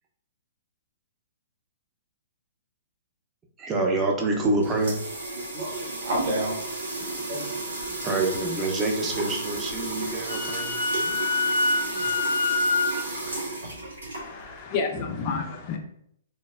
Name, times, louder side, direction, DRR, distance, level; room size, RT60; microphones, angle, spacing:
voice 1, 3.6-5.0 8.0-10.7, right 2 dB, 20° right, 1 dB, 0.5 m, -26 dB
sound 1, 4.3-14.6, right 2 dB, 75° right, 1.0 m, -33 dB
voice 2, 5.3-7.6, right 1 dB, 50° right, -6 dB, 1.3 m, -31 dB
Telephone, 6.9-8.2 8.5-10.2 10.8-12.3, right 4 dB, 90° right, 1.5 m, -51 dB
Wind instrument woodwind instrument, 10.0-13.0, left 3 dB, 85° left, 0.5 m, -25 dB
voice 3, 14.1-15.8, left 5 dB, 35° left, 2 dB, 0.4 m, -30 dB
3.1 x 2.0 x 2.2 m, 0.70 s
figure-of-eight pair, 115°, 0 cm